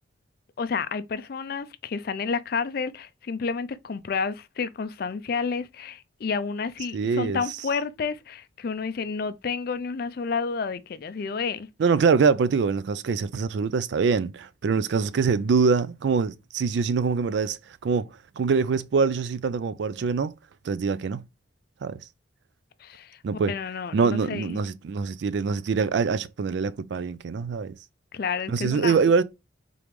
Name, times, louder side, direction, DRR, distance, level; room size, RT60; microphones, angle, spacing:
voice 1, 0.6-11.7 22.8-24.6 28.1-29.0, left 5 dB, 50° left, 0.4 m, -30 dB
voice 2, 6.9-7.4 11.8-18.1 18.4-20.3 20.6-21.2 21.8-22.0 23.2-23.6 23.9-27.7 28.5-29.2, right 5 dB, 65° right, 0.3 m, -24 dB
3.8 x 3.4 x 3.1 m
head